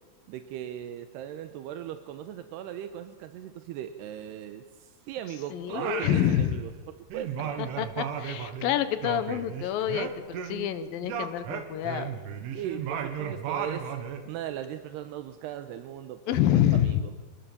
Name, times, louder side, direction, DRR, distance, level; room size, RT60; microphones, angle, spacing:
voice 1, 0.3-6.7 7.1-7.6 12.4-13.9 14.3-17.1, right 11 dB, 75° right, 9 dB, 2.7 m, -38 dB
voice 2, 5.5-6.6 7.8-12.1 16.3-17.0, left 11 dB, 70° left, 10 dB, 2.3 m, -27 dB
Singing, 5.7-6.8 7.1-10.7 11.0-14.3, right 8 dB, 90° right, 4.2 m, -35 dB
27.0 x 20.0 x 7.3 m, 1.3 s
omnidirectional pair, 5.4 m